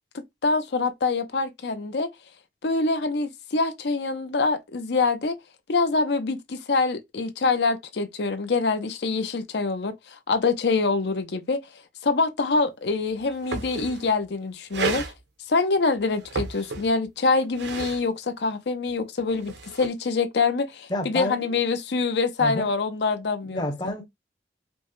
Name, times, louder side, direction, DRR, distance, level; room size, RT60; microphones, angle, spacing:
voice 1, 0.4-2.1 2.6-5.4 5.7-11.6 12.0-15.1 15.5-23.9, left 4 dB, 70° left, 0.6 m, -25 dB
sound 1, 12.9-13.0 13.2-14.2 14.7-15.1 16.1-17.1 17.4-18.0 19.2-19.9, right 3 dB, 85° right, 0.9 m, -32 dB
voice 2, 20.9-21.5 22.4-22.7 23.5-24.1, left 1 dB, 25° left, 0.7 m, -29 dB
5.2 x 2.1 x 3.0 m
head